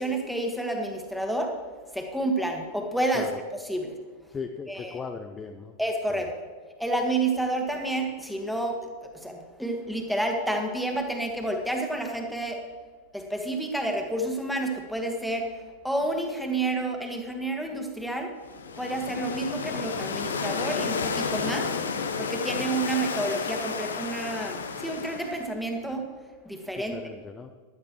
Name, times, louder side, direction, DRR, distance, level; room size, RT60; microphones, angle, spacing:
voice 1, 0.0-1.5 1.9-3.3 3.7-3.9 4.7-5.0 5.8-6.3 6.8-12.6 13.1-15.5 15.8-18.3 18.8-21.7 22.2-26.1 26.5-27.0, right 2 dB, ahead, 2 dB, 1.8 m, -29 dB
voice 2, 4.3-5.8 6.1-6.2 26.9-27.5, left 5 dB, 20° left, 5 dB, 0.6 m, -37 dB
sound 1, 18.4-25.5, left 5 dB, 70° left, 0.9 m, -31 dB
15.5 x 11.5 x 3.1 m, 1.5 s
figure-of-eight pair, 90°, 0 cm